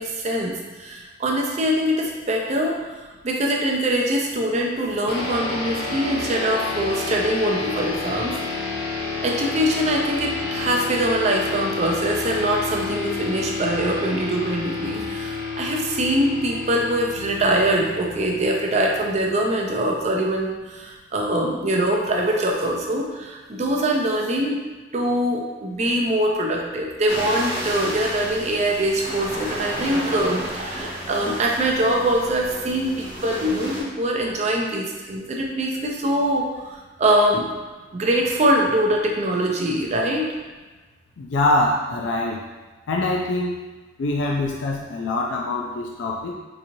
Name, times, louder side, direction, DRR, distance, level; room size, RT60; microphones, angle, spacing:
voice 1, 0.0-2.8 3.2-8.4 9.2-24.6 24.9-36.7 37.0-37.5 37.9-40.3, right 1 dB, 35° right, 0 dB, 0.4 m, -23 dB
sound 1, 5.1-19.9, left 3 dB, 60° left, 0.8 m, -30 dB
sound 2, 27.1-33.8, equal, 20° right, 0.9 m, -32 dB
voice 2, 41.2-42.4 42.9-43.5 44.0-46.3, left 2 dB, 75° left, -1 dB, 0.4 m, -24 dB
3.9 x 2.9 x 2.6 m, 1.2 s
head